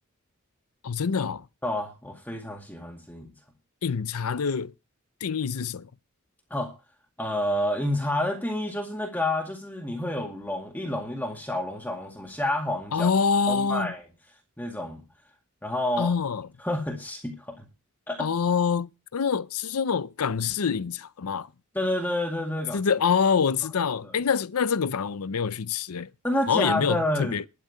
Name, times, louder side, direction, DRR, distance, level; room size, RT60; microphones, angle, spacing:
voice 1, 0.8-1.5 3.8-4.7 5.2-5.9 12.9-13.9 16.0-16.5 18.2-21.5 22.7-26.1 26.5-27.5, left 6 dB, 85° left, 0.6 m, -26 dB
voice 2, 1.6-3.3 6.5-6.7 7.2-13.1 13.5-14.0 14.6-15.0 15.6-16.1 16.6-17.7 18.1-18.3 21.8-22.8 26.2-27.4, left 1 dB, 10° left, 2.1 m, -29 dB
12.0 x 6.5 x 8.7 m
head